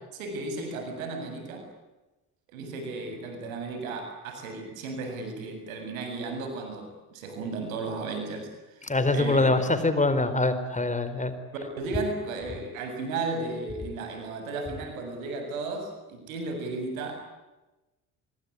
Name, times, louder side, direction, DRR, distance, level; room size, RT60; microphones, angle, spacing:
voice 1, 0.1-1.7 2.5-8.5 8.8-9.4 11.8-17.2, right 3 dB, 90° right, 6 dB, 7.4 m, -34 dB
voice 2, 8.8-11.3, left 2 dB, 20° left, 11 dB, 4.4 m, -24 dB
26.0 x 23.0 x 9.9 m, 1.0 s
hypercardioid pair, 70°, 40 cm